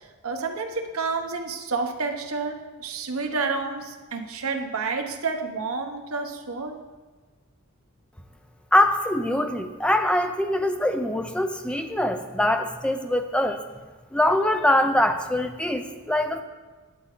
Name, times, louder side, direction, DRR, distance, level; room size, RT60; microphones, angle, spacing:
voice 1, 0.2-6.8, right 4 dB, 65° right, 4 dB, 1.0 m, -29 dB
voice 2, 8.7-13.6 14.1-16.4, left 1 dB, 5° left, 7 dB, 0.6 m, -23 dB
10.5 x 8.6 x 3.8 m, 1.3 s
head